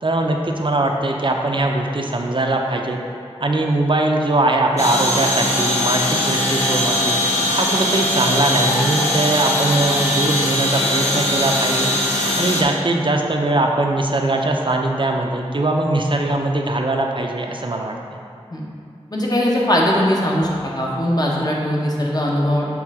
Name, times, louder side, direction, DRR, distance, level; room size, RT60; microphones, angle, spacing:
voice 1, 0.0-3.0 3.4-7.2 7.5-11.9 12.3-17.9, right 2 dB, 50° right, 2 dB, 0.6 m, -21 dB
sound 1, 4.8-12.6, left 1 dB, 90° left, 0.8 m, -20 dB
voice 2, 19.1-20.5 20.8-22.7, equal, 40° left, -3 dB, 1.0 m, -19 dB
6.3 x 3.3 x 4.8 m, 2.5 s
wide cardioid pair, 55°, 11 cm